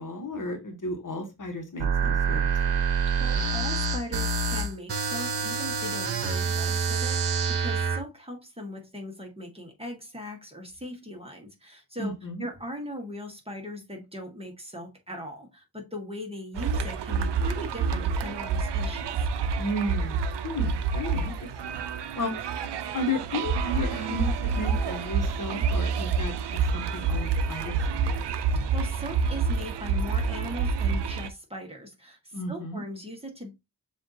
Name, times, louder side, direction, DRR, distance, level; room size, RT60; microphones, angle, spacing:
voice 1, 0.0-2.8 12.0-12.5 19.6-20.2 20.4-21.8 22.2-22.3 22.9-28.3 32.3-32.8, left 1 dB, 50° left, 1.1 m, -33 dB
sound 1, 1.8-8.0, right 5 dB, 65° right, 0.9 m, -26 dB
voice 2, 3.2-12.1 12.4-19.2 28.5-33.5, equal, 15° right, 1.3 m, -39 dB
sound 2, 16.6-31.3, right 5 dB, 85° right, 0.5 m, -28 dB
7.0 x 2.6 x 2.7 m
wide cardioid pair, 95°, 40 cm